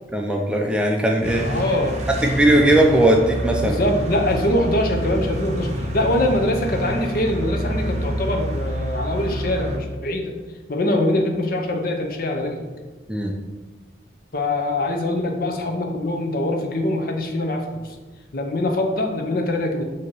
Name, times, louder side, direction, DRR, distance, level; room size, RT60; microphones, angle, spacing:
voice 1, 0.1-1.5 2.2-3.8 13.1-13.3, right 1 dB, 5° right, 1 dB, 0.4 m, -18 dB
sound 1, 1.2-9.8, equal, 35° right, 0.7 m, -27 dB
voice 2, 1.4-2.0 3.6-10.3 10.7-12.6 14.3-17.6 18.3-19.8, left 1 dB, 50° left, 3 dB, 0.7 m, -23 dB
6.8 x 2.8 x 5.3 m, 1.3 s
head